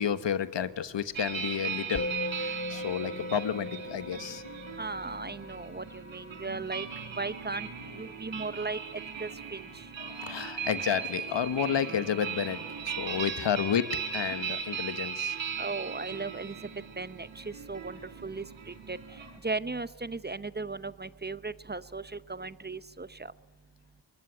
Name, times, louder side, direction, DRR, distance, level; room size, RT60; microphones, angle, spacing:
voice 1, 0.0-2.1 2.4-4.4 10.0-15.3, left 8 dB, 70° left, 13 dB, 1.3 m, -31 dB
sound 1, 1.1-19.4, right 7 dB, 80° right, 3.9 m, -38 dB
Musical instrument, 2.0-11.5, left 1 dB, 30° left, 1.0 m, -41 dB
voice 2, 4.8-6.9 7.2-7.7 8.0-8.8 9.2-9.9 15.6-16.6 17.0-19.0 19.4-23.3, right 3 dB, 20° right, 15 dB, 0.8 m, -37 dB
22.5 x 21.0 x 9.7 m, 1.4 s
cardioid pair, 60°, 45 cm